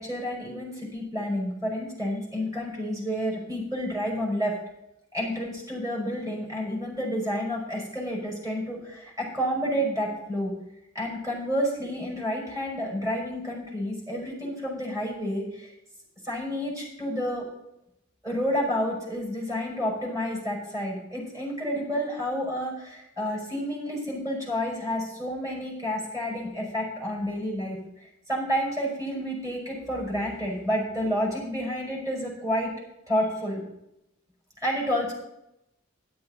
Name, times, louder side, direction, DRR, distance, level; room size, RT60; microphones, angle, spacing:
voice 1, 0.0-4.5 5.1-10.5 10.9-15.7 16.2-17.5 18.2-32.7 33.1-33.6 34.6-35.1, equal, 15° right, -3 dB, 5.6 m, -30 dB
12.5 x 11.5 x 4.0 m, 0.83 s
head